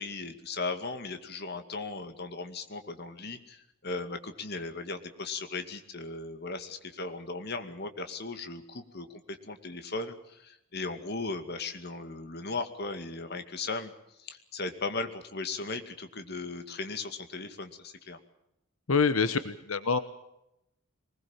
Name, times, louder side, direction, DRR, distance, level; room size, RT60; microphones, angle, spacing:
voice 1, 0.0-13.9 14.2-18.2, left 3 dB, 50° left, 8 dB, 2.3 m, -37 dB
voice 2, 18.9-20.0, left 5 dB, 85° left, 12 dB, 1.1 m, -26 dB
23.0 x 20.5 x 7.3 m, 0.85 s
head